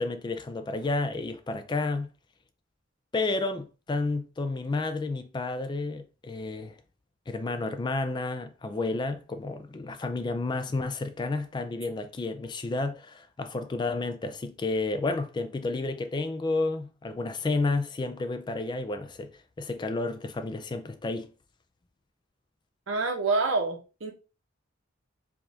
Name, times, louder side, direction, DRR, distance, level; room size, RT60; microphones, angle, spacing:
voice 1, 0.0-2.1 3.1-6.8 7.3-19.3 19.6-21.3, left 3 dB, 25° left, 0.3 m, -31 dB
voice 2, 22.9-24.1, right 3 dB, 80° right, 1.0 m, -27 dB
4.8 x 2.3 x 2.7 m
head